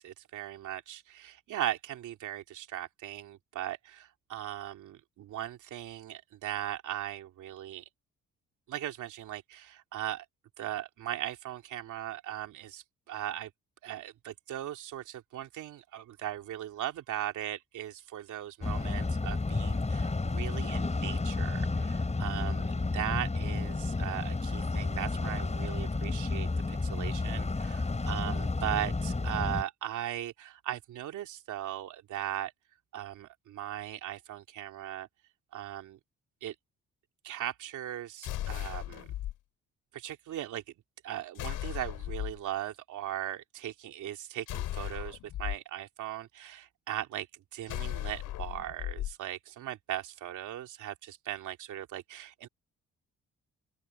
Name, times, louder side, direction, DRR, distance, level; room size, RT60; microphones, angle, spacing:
voice 1, 0.0-7.8 8.7-10.2 10.6-13.5 13.8-32.5 32.9-35.1 35.5-36.0 36.4-36.5 37.2-39.1 39.9-40.6 41.0-47.3 47.5-52.5, right 12 dB, 80° right, 3.0 m, -38 dB
sound 1, 18.6-29.6, left 3 dB, 20° left, 7.1 m, -31 dB
sound 2, 38.2-39.3 41.4-42.4 44.5-45.6 47.7-49.1, left 13 dB, 85° left, 2.9 m, -36 dB
open air
cardioid pair, 90°, 30 cm